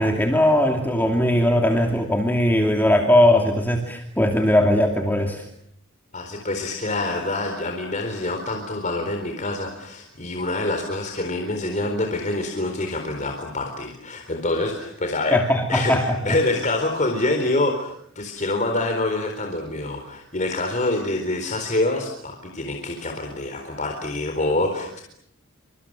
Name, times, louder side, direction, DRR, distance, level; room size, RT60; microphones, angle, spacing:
voice 1, 0.0-5.4 15.3-16.4, left 1 dB, 10° left, 2 dB, 2.6 m, -19 dB
voice 2, 6.1-15.4 15.7-25.0, left 2 dB, 35° left, 3 dB, 4.1 m, -26 dB
29.0 x 26.5 x 7.6 m, 0.72 s
head